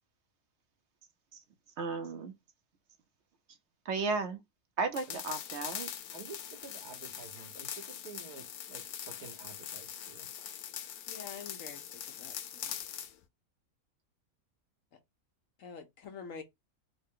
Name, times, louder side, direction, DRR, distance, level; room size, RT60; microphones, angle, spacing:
voice 1, 1.8-2.3 3.9-4.4 4.8-5.9, right 4 dB, 60° right, 0.8 m, -34 dB
sound 1, 4.9-13.1, left 10 dB, 85° left, 1.1 m, -42 dB
voice 2, 6.1-10.3, right 4 dB, 90° right, 1.7 m, -50 dB
voice 3, 11.1-12.8 14.9-15.0 15.6-16.4, left 6 dB, 65° left, 1.2 m, -47 dB
3.8 x 2.1 x 3.6 m
omnidirectional pair, 1.5 m